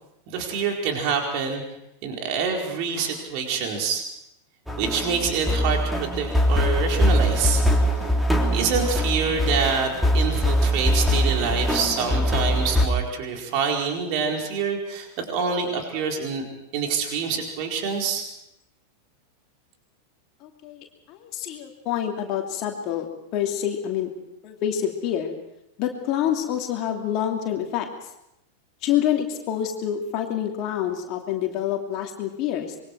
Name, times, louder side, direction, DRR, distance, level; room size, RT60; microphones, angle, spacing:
voice 1, 0.3-1.6 2.0-4.1 4.8-7.6 8.5-16.5 16.7-18.2, right 6 dB, 45° right, 1 dB, 4.5 m, -26 dB
sound 1, 4.7-12.9, equal, ahead, 3.2 m, -22 dB
voice 2, 20.4-24.1 24.4-25.4 25.8-27.9 28.8-32.8, left 10 dB, 40° left, 2 dB, 2.8 m, -27 dB
26.0 x 23.0 x 4.7 m, 0.81 s
figure-of-eight pair, 90°, 0 cm